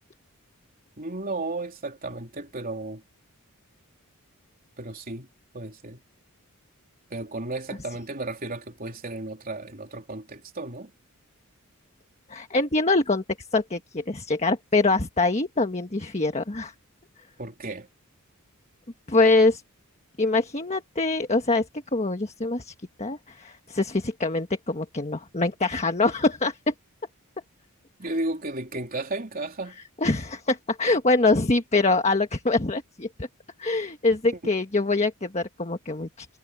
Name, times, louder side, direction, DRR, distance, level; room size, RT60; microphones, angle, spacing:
voice 1, 1.0-3.0 4.8-5.3 5.5-6.0 7.1-10.9 17.4-17.9 28.0-29.8 34.3-34.4, right 2 dB, 40° right, 3.5 m, -33 dB
voice 2, 12.3-13.2 13.5-16.7 19.1-19.6 20.2-21.6 21.9-22.7 23.0-26.7 30.0-33.3 33.6-36.3, left 3 dB, 30° left, 1.4 m, -24 dB
head